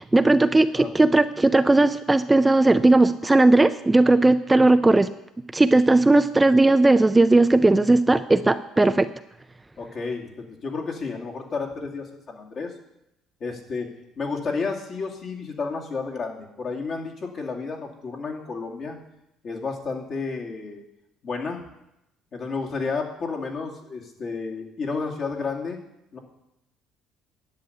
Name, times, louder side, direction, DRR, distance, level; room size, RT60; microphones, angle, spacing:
voice 1, 0.0-5.1 5.5-9.1, right 2 dB, 15° right, 11 dB, 0.4 m, -17 dB
voice 2, 9.8-12.7 13.4-13.9 14.2-19.0 19.4-20.8 21.2-21.6 22.3-25.8 26.1-26.2, left 4 dB, 45° left, 0 dB, 2.4 m, -31 dB
10.5 x 6.9 x 9.2 m, 0.86 s
cardioid pair, 110°, 0 cm